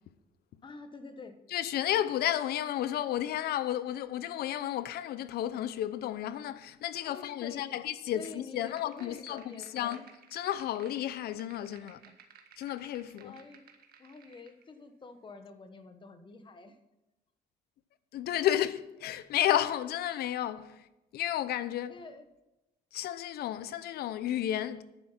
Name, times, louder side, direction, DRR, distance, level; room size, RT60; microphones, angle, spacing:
voice 1, 0.6-1.4 7.1-7.7 8.1-10.1 13.2-13.6 14.0-16.8 21.9-22.2, left 3 dB, 30° left, 1.3 m, -48 dB
voice 2, 1.5-10.0 10.3-12.0 12.6-13.3 18.1-20.9 21.1-22.0 22.9-24.8, left 12 dB, 70° left, 0.7 m, -32 dB
sound 1, 8.6-14.6, right 7 dB, 65° right, 1.6 m, -58 dB
11.0 x 9.3 x 5.8 m
cardioid pair, 110°, 17 cm